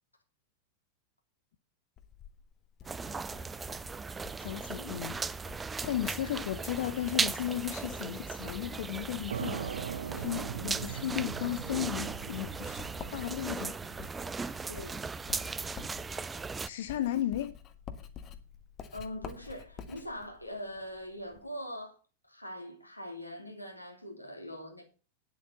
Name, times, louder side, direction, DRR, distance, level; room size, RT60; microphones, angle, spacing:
Writing, 2.0-21.5, left 7 dB, 30° left, 1.4 m, -50 dB
sound 1, 2.8-16.7, right 4 dB, 15° right, 0.4 m, -37 dB
voice 1, 4.4-5.2 5.8-9.6 10.1-12.8 13.1-13.8 16.6-17.5, left 12 dB, 55° left, 0.6 m, -35 dB
sound 2, 9.3-16.7, right 8 dB, 65° right, 0.7 m, -42 dB
voice 2, 14.7-15.0 18.9-22.0 22.3-24.8, equal, 85° left, 3.1 m, -42 dB
10.0 x 7.9 x 6.7 m
figure-of-eight pair, 90°, 0 cm